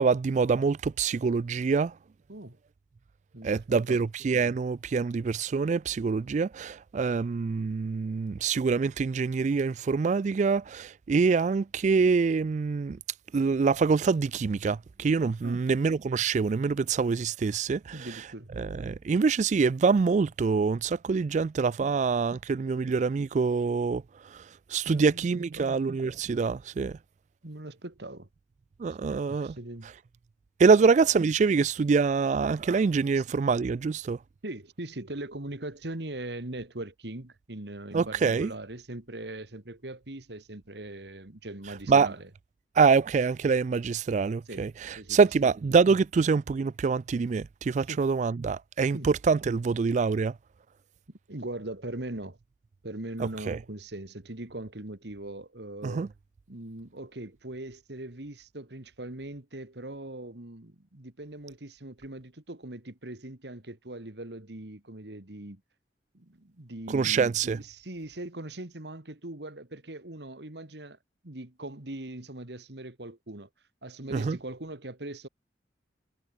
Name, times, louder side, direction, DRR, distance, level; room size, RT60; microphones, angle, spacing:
voice 1, 0.0-1.9 3.4-13.0 13.3-18.0 18.6-24.0 24.3-24.4 24.7-27.0 28.8-29.6 30.6-34.2 37.9-38.5 41.9-42.1 42.8-50.3 53.2-53.6 55.8-56.1 66.9-67.6 74.1-74.4, right 5 dB, 40° right, 0.3 m, -25 dB
voice 2, 3.3-4.1 15.4-15.6 17.9-18.5 21.8-21.9 24.9-25.3 25.6-25.7 27.4-28.3 29.3-29.9 30.7-30.9 33.1-33.2 34.4-42.3 44.5-45.2 47.9-48.0 48.9-49.1 51.3-52.4 52.8-56.1 56.5-65.6 66.1-71.0 71.2-73.5 73.8-75.3, right 1 dB, 70° right, 2.2 m, -40 dB
head